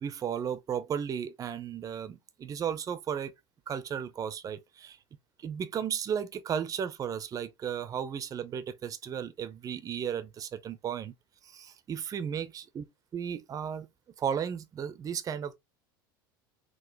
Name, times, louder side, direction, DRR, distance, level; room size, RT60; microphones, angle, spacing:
voice 1, 0.0-3.3 3.7-5.0 5.4-11.1 11.4-12.8 13.1-13.9 14.2-15.6, right 8 dB, 30° right, 0.5 m, -34 dB
3.9 x 2.4 x 2.7 m
supercardioid pair, 100°, 12 cm